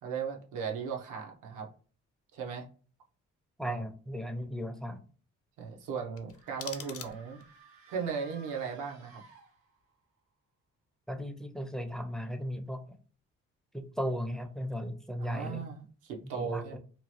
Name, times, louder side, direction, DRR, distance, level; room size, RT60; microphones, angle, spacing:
voice 1, 0.0-1.7 2.3-2.7 3.6-3.8 5.6-7.4 7.9-9.2 15.2-16.8, right 6 dB, 85° right, 1 dB, 0.8 m, -37 dB
voice 2, 3.6-5.0 11.1-12.8 13.7-15.7 16.4-16.8, equal, ahead, 6 dB, 0.4 m, -36 dB
sound 1, 6.1-7.6, left 8 dB, 50° left, 0.5 m, -45 dB
sound 2, 6.3-10.0, right 3 dB, 70° right, 1.3 m, -57 dB
2.9 x 2.2 x 2.8 m, 0.41 s
cardioid pair, 90°, 30 cm